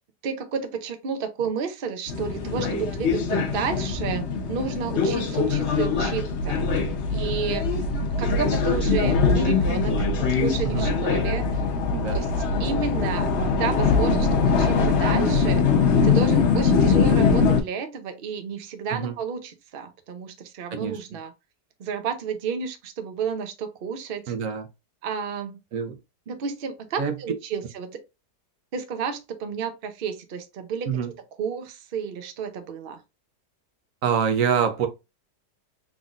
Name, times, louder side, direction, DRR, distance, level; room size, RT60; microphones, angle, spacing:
voice 1, 0.2-6.6 7.1-7.7 8.2-9.9 10.3-11.6 12.1-13.3 13.6-15.6 16.0-21.3 21.8-24.3 25.0-25.6 26.3-28.0 28.7-31.1 31.4-33.0, right 6 dB, 75° right, 0.5 m, -31 dB
sound 1, 2.1-17.6, left 5 dB, 55° left, 0.8 m, -22 dB
voice 2, 2.5-2.9 10.6-10.9 11.9-12.3 18.9-19.2 20.7-21.0 24.3-24.7 25.7-26.0 27.0-27.2 30.9-31.1 34.0-34.9, right 7 dB, 60° right, 1.0 m, -26 dB
3.8 x 3.7 x 2.4 m
omnidirectional pair, 1.9 m